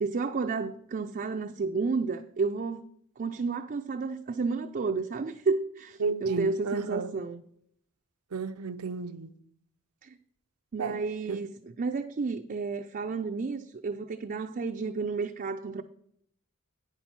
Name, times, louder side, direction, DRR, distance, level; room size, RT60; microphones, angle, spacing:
voice 1, 0.0-2.8 3.2-7.4 10.0-10.2 10.7-15.8, right 4 dB, 40° right, 0.4 m, -31 dB
voice 2, 6.0-7.1 8.3-9.3 10.8-11.0 11.3-11.4, right 4 dB, 85° right, 0.6 m, -33 dB
9.3 x 6.0 x 5.6 m
head